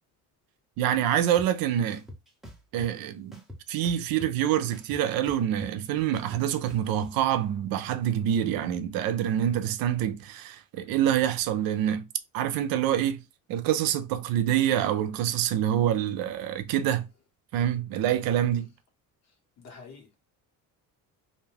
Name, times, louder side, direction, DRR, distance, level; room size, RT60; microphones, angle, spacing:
voice 1, 0.8-2.0 2.7-3.4 3.7-12.0 12.3-13.2 13.5-17.0 17.5-18.7, right 11 dB, 75° right, 0.5 m, -26 dB
sound 1, 1.4-1.5 1.9-2.9 3.3-4.4 4.7-7.1, left 1 dB, ahead, 0.7 m, -44 dB
voice 2, 19.2-20.2, left 4 dB, 50° left, 1.3 m, -49 dB
2.6 x 2.2 x 3.3 m
cardioid pair, 120°, 35 cm